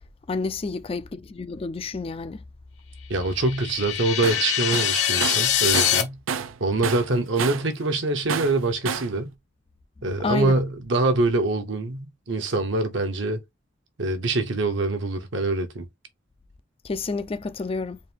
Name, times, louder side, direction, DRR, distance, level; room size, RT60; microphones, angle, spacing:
voice 1, 0.3-2.4 10.2-10.6 16.8-18.0, left 3 dB, 30° left, 0.4 m, -29 dB
voice 2, 3.1-6.2 6.6-9.3 10.0-13.4 14.0-15.9, right 2 dB, 65° right, 0.9 m, -24 dB
sound 1, 3.2-6.0, left 10 dB, 60° left, 1.0 m, -24 dB
Tools, 4.2-4.4 4.7-6.6 6.8-7.7 8.3-9.2, right 6 dB, 90° right, 0.5 m, -29 dB
4.1 x 2.6 x 3.5 m
head